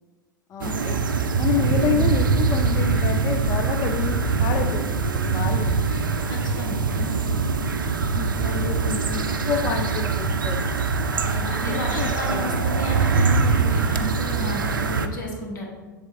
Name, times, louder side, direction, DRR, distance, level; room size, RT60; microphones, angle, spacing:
voice 1, 0.5-1.0 1.4-5.9 8.1-10.8 11.2-12.6, left 7 dB, 30° left, 4 dB, 0.4 m, -29 dB
sound 1, 0.6-15.1, right 4 dB, 75° right, 0.4 m, -23 dB
voice 2, 6.3-7.1 11.5-15.6, left 1 dB, 65° left, -1 dB, 1.6 m, -32 dB
7.5 x 3.6 x 3.5 m, 1.3 s
figure-of-eight pair, 90°, 11 cm